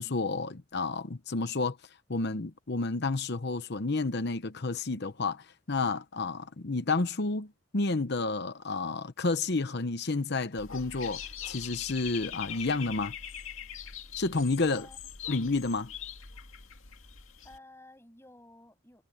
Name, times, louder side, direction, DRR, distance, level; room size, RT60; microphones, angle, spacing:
voice 1, 0.0-1.8 2.1-13.1 14.2-14.9 15.3-15.9, left 3 dB, 50° left, 0.9 m, -30 dB
Dog / Bird, 10.6-17.6, left 8 dB, 70° left, 2.1 m, -42 dB
voice 2, 17.4-19.0, left 2 dB, 10° left, 7.9 m, -53 dB
head